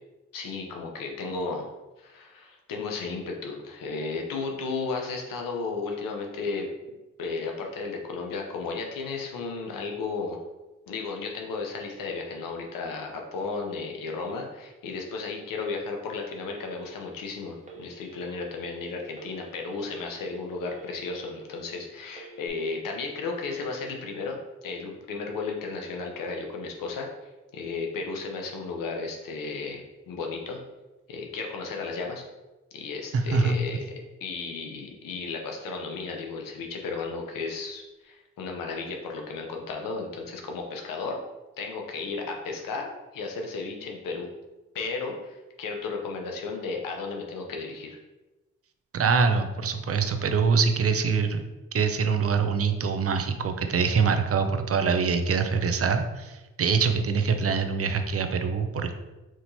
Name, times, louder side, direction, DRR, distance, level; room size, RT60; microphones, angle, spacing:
voice 1, 0.3-1.7 2.0-6.7 7.2-10.4 10.9-27.1 27.5-30.6 31.1-32.2 32.7-33.8 34.2-41.2 41.6-44.3 44.7-48.0, left 4 dB, 85° left, 2 dB, 0.8 m, -34 dB
Telephone, 16.5-17.2 17.6-18.4 19.1-19.9 20.4-21.4 22.1-22.5, right 3 dB, 20° right, 1.1 m, -48 dB
voice 2, 33.1-33.6 48.9-51.5 51.7-58.9, right 5 dB, 45° right, 7 dB, 0.6 m, -24 dB
6.1 x 2.8 x 2.7 m, 1.1 s
supercardioid pair, 40°, 32 cm